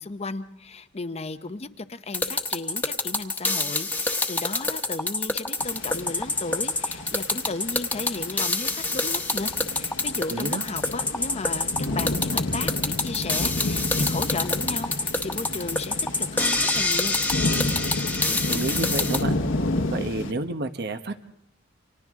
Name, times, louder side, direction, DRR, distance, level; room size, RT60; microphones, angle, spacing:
voice 1, 0.0-17.2, left 3 dB, 35° left, 11 dB, 0.8 m, -35 dB
sound 1, 2.1-19.2, left 2 dB, 10° left, 1.3 m, -26 dB
sound 2, 5.6-20.3, left 2 dB, 75° left, 1.4 m, -31 dB
voice 2, 10.3-10.6 18.3-19.4 19.9-21.2, right 2 dB, 60° right, 9 dB, 1.1 m, -30 dB
29.5 x 26.5 x 3.7 m, 0.81 s
head